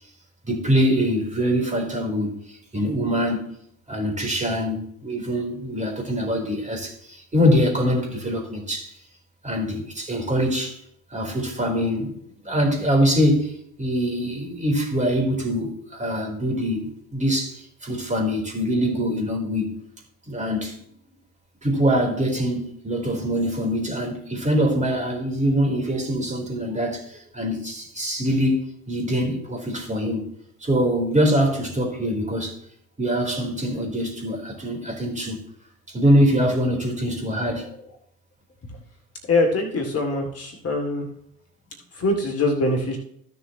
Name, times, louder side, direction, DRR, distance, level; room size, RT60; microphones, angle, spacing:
voice 1, 0.5-3.5 3.9-8.9 9.4-10.8 11.1-12.2 12.4-19.8 20.3-20.8 21.6-30.3 30.6-32.6 33.0-35.4 35.9-37.7, equal, 15° right, 3.8 m, -24 dB
voice 2, 39.3-41.1 41.9-43.0, left 2 dB, 30° left, 2.5 m, -23 dB
15.5 x 7.0 x 3.0 m
hypercardioid pair, 70°, 45 cm